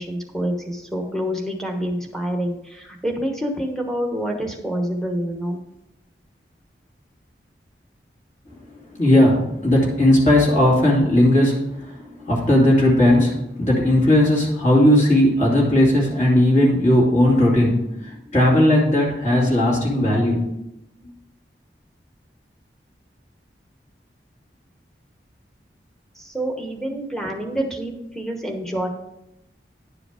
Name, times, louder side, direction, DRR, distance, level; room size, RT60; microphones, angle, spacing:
voice 1, 0.0-5.6 26.1-28.9, equal, ahead, 2 dB, 1.0 m, -27 dB
voice 2, 8.9-20.4, left 1 dB, 40° left, -5 dB, 2.5 m, -17 dB
10.5 x 4.9 x 4.9 m, 0.85 s
head